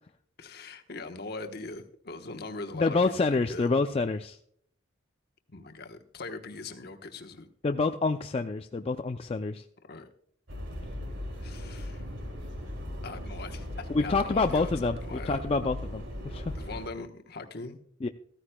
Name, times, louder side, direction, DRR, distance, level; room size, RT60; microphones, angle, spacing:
voice 1, 0.4-3.1 3.5-3.7 5.5-7.5 9.9-10.1 11.4-12.0 13.0-15.4 16.5-17.8, left 3 dB, 55° left, 5 dB, 1.1 m, -41 dB
voice 2, 2.7-4.4 7.6-9.6 13.9-16.5 18.0-18.1, left 3 dB, 30° left, 6 dB, 0.4 m, -27 dB
sound 1, 10.5-16.9, equal, 70° right, 2.5 m, -38 dB
14.5 x 14.5 x 2.2 m, 0.62 s
head